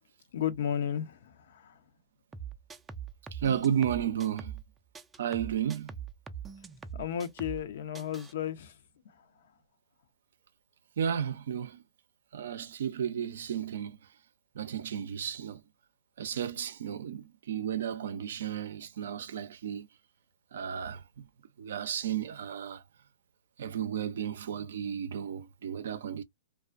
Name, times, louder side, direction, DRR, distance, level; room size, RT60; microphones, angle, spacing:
voice 1, 0.3-1.7 6.9-8.7, left 9 dB, 65° left, 0.5 m, -33 dB
sound 1, 2.3-4.7 4.9-7.7 7.9-8.3, right 7 dB, 10° right, 0.3 m, -42 dB
voice 2, 3.3-4.5 5.2-5.9 11.0-11.8 12.3-14.0 14.6-15.6 16.2-19.9 20.5-21.2 21.6-22.8 23.6-26.2, right 9 dB, 70° right, 0.4 m, -33 dB
2.4 x 2.3 x 2.3 m
hypercardioid pair, 125°, 0 cm